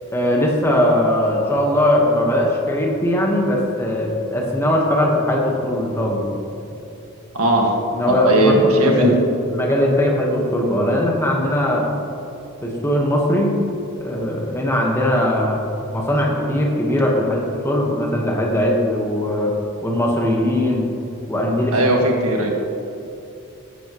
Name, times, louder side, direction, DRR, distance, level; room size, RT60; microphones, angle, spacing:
voice 1, 0.1-6.3 7.9-9.2 9.5-11.9 12.6-13.6 14.0-15.6 15.9-19.5 19.8-20.9 21.3-21.8, left 1 dB, 10° left, -1 dB, 1.3 m, -20 dB
voice 2, 7.4-7.7 8.3-9.1 21.7-22.5, right 1 dB, 90° right, 0 dB, 1.7 m, -17 dB
14.5 x 10.0 x 3.1 m, 2.8 s
head